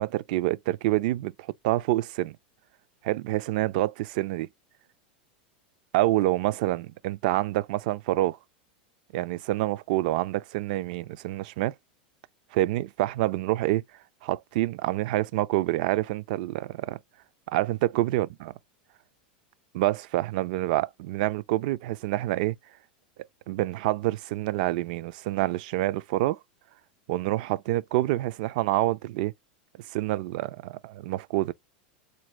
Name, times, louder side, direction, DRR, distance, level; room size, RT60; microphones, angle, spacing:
voice 1, 0.0-1.3 1.6-2.4 3.0-4.5 5.9-8.4 9.1-11.7 12.5-13.8 14.2-17.0 17.5-18.5 19.7-22.6 23.5-26.4 27.1-29.3 29.9-31.5, right 16 dB, 65° right, 0.3 m, -27 dB
4.1 x 2.6 x 2.9 m
hypercardioid pair, 115°, 5 cm